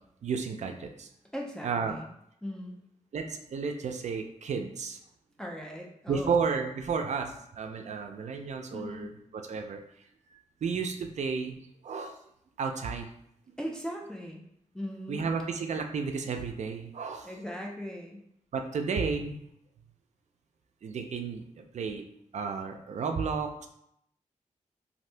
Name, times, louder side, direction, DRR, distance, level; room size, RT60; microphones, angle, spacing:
voice 1, 0.2-1.1 1.6-2.0 3.1-5.0 6.1-9.8 10.6-11.6 11.8-12.2 12.6-13.1 15.1-17.3 18.5-19.5 20.8-21.4 21.7-22.0 22.3-23.7, right 5 dB, 65° right, 5 dB, 0.4 m, -32 dB
voice 2, 1.3-2.1 2.4-2.8 5.4-6.4 8.7-9.1 13.6-14.4 14.7-15.3 17.2-18.2, equal, 5° left, -1 dB, 0.4 m, -39 dB
2.6 x 2.6 x 3.2 m, 0.74 s
wide cardioid pair, 110°, 13 cm